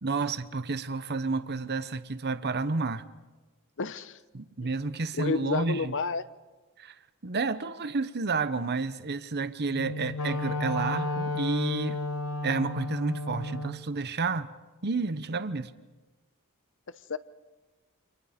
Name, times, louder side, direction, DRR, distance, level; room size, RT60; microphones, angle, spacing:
voice 1, 0.0-3.0 4.3-5.9 6.8-7.0 7.2-12.0 12.4-14.5 14.8-15.7, right 3 dB, 50° right, 1.0 m, -30 dB
voice 2, 3.8-4.2 5.2-6.2 17.1-17.2, left 4 dB, 60° left, 0.9 m, -30 dB
Wind instrument woodwind instrument, 9.7-13.8, left 2 dB, 80° left, 1.5 m, -32 dB
29.0 x 26.5 x 5.2 m
head